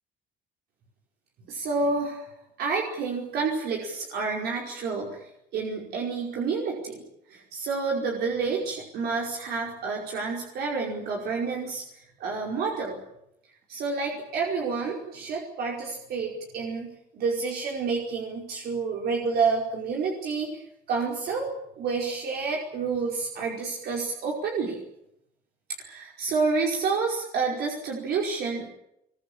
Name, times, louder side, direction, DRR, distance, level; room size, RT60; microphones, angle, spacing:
voice 1, 1.5-2.3 2.6-5.2 5.5-7.0 7.3-11.8 12.2-13.0 13.7-20.6 20.9-21.5 21.8-24.8 25.8-28.7, right 4 dB, 70° right, -1 dB, 5.2 m, -29 dB
23.5 x 22.0 x 8.9 m, 0.80 s
cardioid pair, 110°, 17 cm